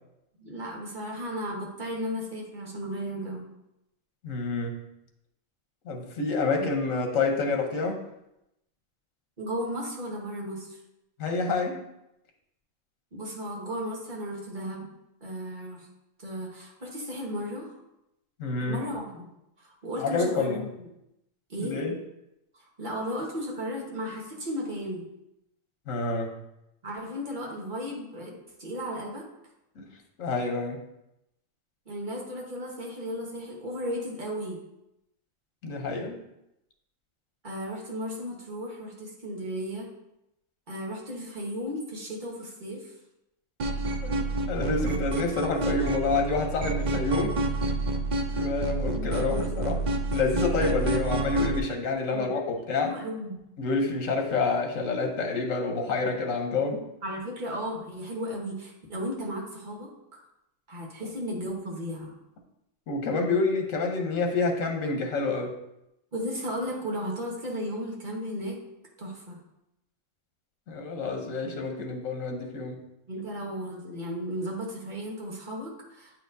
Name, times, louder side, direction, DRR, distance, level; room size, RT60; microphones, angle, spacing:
voice 1, 0.4-3.5 6.5-6.7 9.4-10.8 13.1-14.9 15.2-15.9 16.2-17.8 18.6-19.3 19.6-20.7 21.5-21.8 22.8-25.1 26.8-29.3 31.9-34.6 37.4-39.9 40.7-42.9 44.9-45.0 48.9-49.2 52.1-52.3 52.8-53.4 57.0-60.2 60.7-62.1 66.1-68.6 69.0-69.4 73.1-76.2, equal, 40° right, -2 dB, 1.4 m, -35 dB
voice 2, 4.2-4.8 5.8-8.0 11.2-11.7 18.4-18.8 20.0-20.6 21.6-21.9 25.9-26.3 29.8-29.9 30.2-30.8 35.6-36.2 44.0-44.1 44.5-47.3 48.4-49.8 50.1-52.9 53.6-56.8 61.0-61.1 62.9-65.5 70.7-72.8, left 3 dB, 85° left, 3 dB, 1.3 m, -28 dB
sound 1, 43.6-51.6, right 2 dB, 55° right, 0.5 m, -29 dB
8.9 x 4.3 x 2.6 m, 0.86 s
omnidirectional pair, 1.4 m